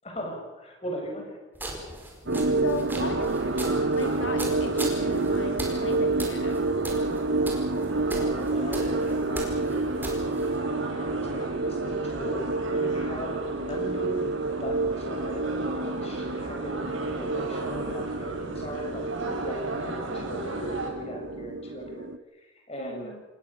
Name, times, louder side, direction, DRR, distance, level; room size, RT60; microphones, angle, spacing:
voice 1, 0.0-1.4 8.1-22.0 22.3-23.1, right 1 dB, 30° left, 1 dB, 7.4 m, -39 dB
sound 1, 1.5-10.6, right 1 dB, 10° right, 4.7 m, -39 dB
sound 2, 2.3-22.2, right 3 dB, 70° right, 0.9 m, -29 dB
voice 2, 2.5-3.3 4.0-6.7 22.8-23.2, left 3 dB, 70° left, 4 dB, 1.9 m, -36 dB
sound 3, 3.0-20.9, right 2 dB, 85° right, 5.7 m, -36 dB
27.0 x 20.0 x 7.2 m, 1.1 s
head